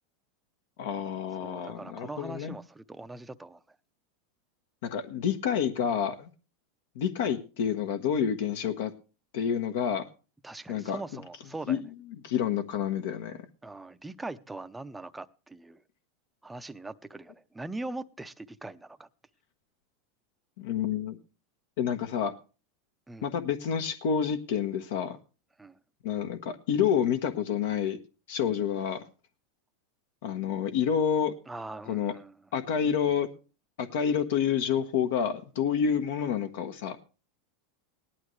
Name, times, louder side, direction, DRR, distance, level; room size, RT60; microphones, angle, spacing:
voice 1, 0.8-2.5 4.8-6.3 6.9-8.9 9.3-10.1 10.7-11.0 11.7-11.8 12.2-13.4 20.6-21.2 21.8-22.3 23.2-25.2 26.0-28.0 28.3-29.0 30.2-31.3 31.9-32.1 32.5-33.3 33.8-37.0, left 8 dB, 70° left, 1.2 m, -28 dB
voice 2, 1.4-3.6 10.4-11.8 13.6-15.8 16.4-19.1 23.1-23.3 25.6-25.8 31.5-32.3, right 2 dB, 5° right, 0.6 m, -41 dB
18.0 x 11.5 x 3.2 m
supercardioid pair, 150°, 0 cm